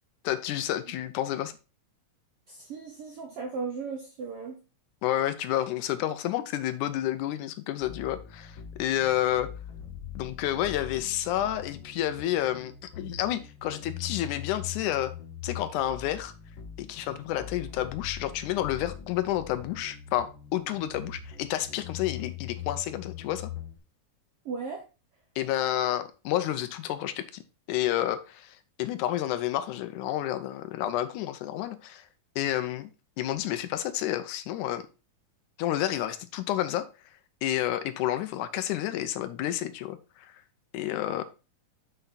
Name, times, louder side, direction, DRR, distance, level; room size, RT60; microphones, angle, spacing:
voice 1, 0.2-1.5 5.0-9.5 10.2-15.1 15.4-16.3 16.8-23.5 25.4-27.4 27.7-32.1 32.4-32.9 33.2-34.8 35.6-36.9 37.4-40.4 40.7-41.2, left 12 dB, 80° left, 1.9 m, -30 dB
voice 2, 2.5-4.6 24.4-24.8, right 5 dB, 70° right, 1.3 m, -36 dB
sound 1, 7.8-23.8, left 9 dB, 60° left, 1.3 m, -42 dB
6.6 x 6.0 x 4.0 m
omnidirectional pair, 3.8 m